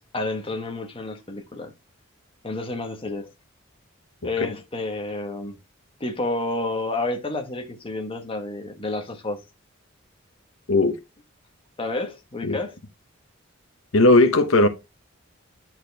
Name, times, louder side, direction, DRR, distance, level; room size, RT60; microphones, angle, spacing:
voice 1, 0.1-1.7 2.4-3.3 4.2-5.6 6.0-9.4 11.8-12.8, left 2 dB, 25° left, 1.3 m, -30 dB
voice 2, 13.9-14.7, left 2 dB, 75° left, 1.0 m, -16 dB
10.5 x 4.4 x 3.4 m
head